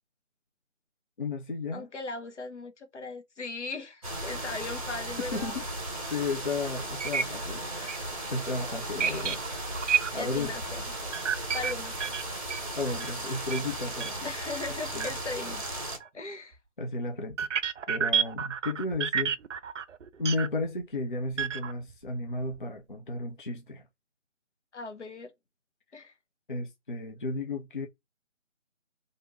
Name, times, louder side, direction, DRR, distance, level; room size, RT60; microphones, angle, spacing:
voice 1, 1.2-1.9 5.2-5.6 6.1-9.4 10.1-10.5 12.7-14.3 14.9-15.1 16.8-17.5 17.9-19.4 20.2-23.8 26.5-27.9, left 3 dB, 45° left, 0.5 m, -33 dB
voice 2, 1.7-5.5 8.7-9.3 10.1-10.8 11.5-12.2 14.2-15.6 16.1-16.6 24.7-25.3 25.9-26.1, left 3 dB, 65° left, 0.8 m, -38 dB
sound 1, 4.0-16.0, right 1 dB, 30° right, 0.8 m, -36 dB
sound 2, 6.4-6.5 7.0-7.2 7.5-7.6 7.9-8.0 9.0-10.3 11.1-13.2 13.5-13.7 13.9-14.1 14.4-14.6 15.0-15.1 16.0-16.1 17.3-20.5 21.3-21.9 22.3-22.6, right 8 dB, 75° right, 0.5 m, -30 dB
3.0 x 2.5 x 2.6 m
figure-of-eight pair, 160°, 37 cm